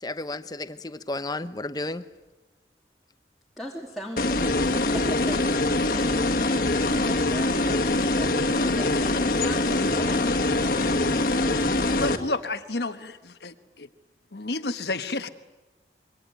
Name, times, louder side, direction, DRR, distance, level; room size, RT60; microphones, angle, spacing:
voice 1, 0.0-2.0, left 2 dB, 20° left, 0.9 m, -32 dB
voice 2, 3.6-4.5 4.9-6.0 6.6-10.3, equal, ahead, 2.6 m, -39 dB
sound 1, 4.2-12.2, left 2 dB, 50° left, 1.8 m, -23 dB
voice 3, 11.9-13.9 14.3-15.3, left 2 dB, 70° left, 1.2 m, -31 dB
26.0 x 23.5 x 9.2 m
head